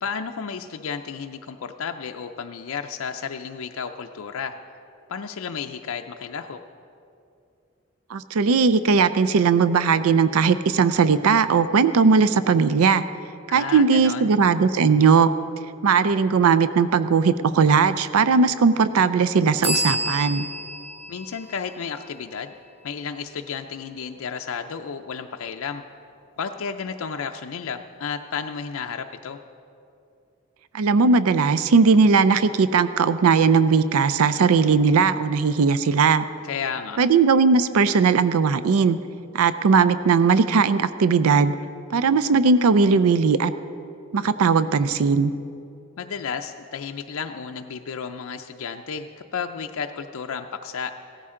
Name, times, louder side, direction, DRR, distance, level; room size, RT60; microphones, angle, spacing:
voice 1, 0.0-4.6 5.1-6.6 13.5-14.3 21.1-22.5 22.8-25.8 26.4-29.4 36.4-37.0 46.0-50.9, left 6 dB, 75° left, 5 dB, 0.5 m, -32 dB
voice 2, 8.1-13.0 13.5-15.3 15.8-20.5 30.7-36.2 37.0-39.0 39.3-41.5 41.9-43.5 44.1-45.3, right 5 dB, 80° right, 13 dB, 0.4 m, -18 dB
sound 1, 19.6-23.2, right 1 dB, 25° right, 2.4 m, -30 dB
16.5 x 14.0 x 3.7 m, 2.6 s
head